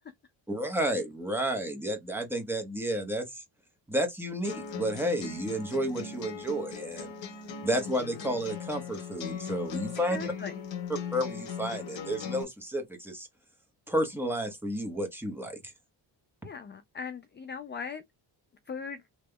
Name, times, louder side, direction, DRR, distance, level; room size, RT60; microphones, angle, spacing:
voice 1, 0.5-3.4 3.9-7.1 7.6-10.3 11.1-13.3 13.9-15.7, right 1 dB, 5° right, 1.0 m, -31 dB
sound 1, 4.4-12.4, left 6 dB, 80° left, 1.0 m, -39 dB
voice 2, 10.1-10.5 16.4-18.0 18.7-19.0, left 5 dB, 25° left, 0.3 m, -39 dB
3.5 x 3.0 x 2.2 m
wide cardioid pair, 150°, 45 cm